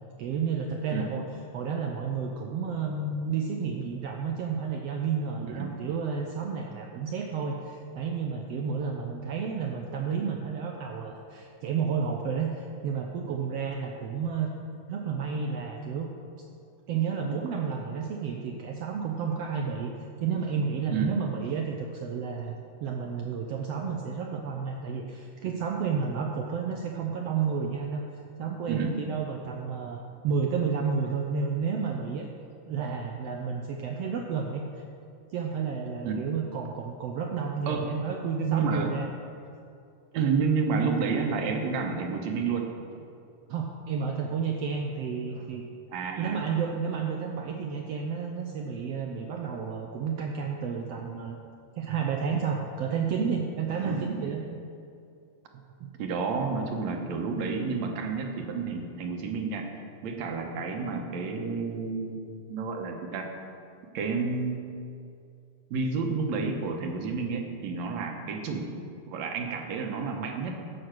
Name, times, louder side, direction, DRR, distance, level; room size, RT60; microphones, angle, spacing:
voice 1, 0.2-1.2 1.5-14.5 14.9-16.1 16.9-19.9 20.2-22.5 22.8-28.0 28.4-30.0 30.2-32.3 32.6-34.8 35.3-39.1 43.5-45.6 46.2-51.4 51.8-54.7, right 6 dB, 85° right, 2 dB, 1.4 m, -31 dB
voice 2, 5.5-5.8 20.9-21.1 28.7-29.0 36.0-36.3 37.7-38.0 38.5-38.9 40.1-42.7 45.9-46.4 53.8-54.1 56.0-59.7 60.0-63.3 63.9-64.6 65.7-68.7 69.1-70.6, right 5 dB, 65° right, 3 dB, 2.1 m, -30 dB
11.5 x 7.8 x 6.1 m, 2.4 s
omnidirectional pair, 3.8 m